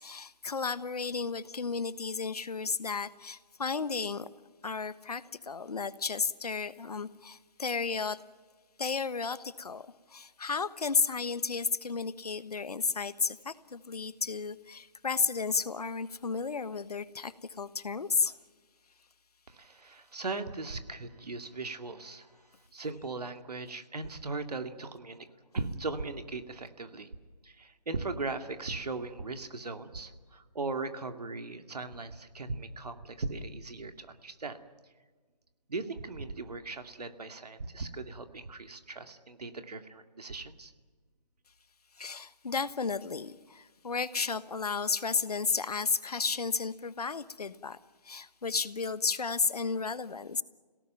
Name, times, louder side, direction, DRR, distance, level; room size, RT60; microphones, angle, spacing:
voice 1, 0.0-4.3 4.6-8.2 8.8-9.8 10.1-18.3 42.0-47.8 48.0-50.4, left 5 dB, 65° left, 15 dB, 1.3 m, -33 dB
voice 2, 19.5-22.3 22.7-25.3 25.5-27.1 27.4-34.6 35.7-40.7, right 3 dB, 70° right, 7 dB, 2.3 m, -38 dB
26.5 x 17.5 x 9.1 m, 1.4 s
figure-of-eight pair, 155°, 21 cm